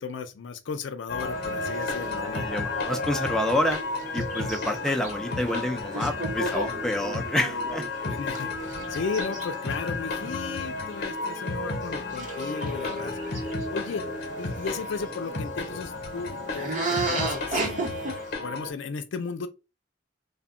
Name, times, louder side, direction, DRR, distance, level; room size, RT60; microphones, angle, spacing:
voice 1, 0.0-2.5 8.1-14.1 14.4-17.9 18.4-19.5, left 5 dB, 85° left, 0.4 m, -35 dB
sound 1, 1.1-18.7, left 3 dB, 55° left, 0.7 m, -32 dB
sound 2, 1.2-11.5 11.8-11.9 12.1-15.1 16.5-18.3, right 3 dB, 45° right, 0.8 m, -35 dB
voice 2, 2.2-3.8 4.1-7.8, left 1 dB, 5° left, 0.3 m, -28 dB
2.1 x 2.1 x 3.6 m
head